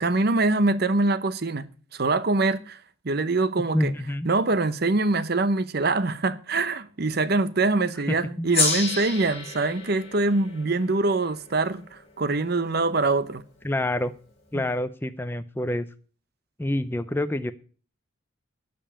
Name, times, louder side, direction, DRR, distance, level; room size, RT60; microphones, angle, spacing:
voice 1, 0.0-2.8 3.0-3.9 4.2-13.4 14.5-14.6, right 3 dB, 50° right, 0.8 m, -24 dB
voice 2, 3.7-4.3 8.1-8.5 13.6-14.1 14.5-15.9 16.6-17.5, left 1 dB, 10° left, 0.5 m, -27 dB
Gong, 8.5-13.3, left 3 dB, 30° left, 5.0 m, -31 dB
12.0 x 5.4 x 8.7 m
head